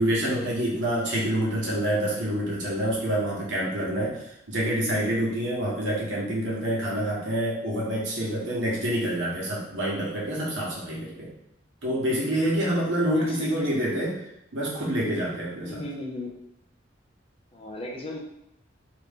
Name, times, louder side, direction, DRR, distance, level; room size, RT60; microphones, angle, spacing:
voice 1, 0.0-4.2 4.5-11.3 11.8-14.2 14.5-15.8, right 1 dB, 80° right, -5 dB, 1.2 m, -27 dB
voice 2, 13.1-14.1 15.6-16.3 17.5-18.2, left 2 dB, 30° left, -2 dB, 0.6 m, -37 dB
3.0 x 2.6 x 3.5 m, 0.82 s
head